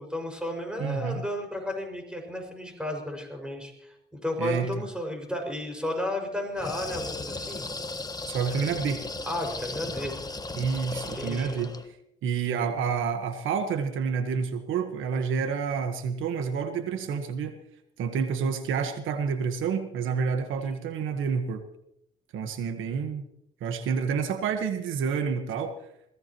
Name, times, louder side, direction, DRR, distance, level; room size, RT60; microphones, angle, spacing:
voice 1, 0.0-7.7 8.5-8.6 9.2-10.1 11.1-11.6, left 1 dB, 5° right, 3 dB, 6.0 m, -33 dB
voice 2, 0.8-1.2 4.4-4.8 8.2-9.0 10.6-11.7 12.2-17.6 18.0-21.6 22.3-23.2 23.6-25.8, right 6 dB, 85° right, 7 dB, 1.4 m, -29 dB
sound 1, 6.5-11.9, left 2 dB, 20° left, 1.3 m, -36 dB
22.0 x 17.0 x 3.1 m, 0.77 s
cardioid pair, 90°, 20 cm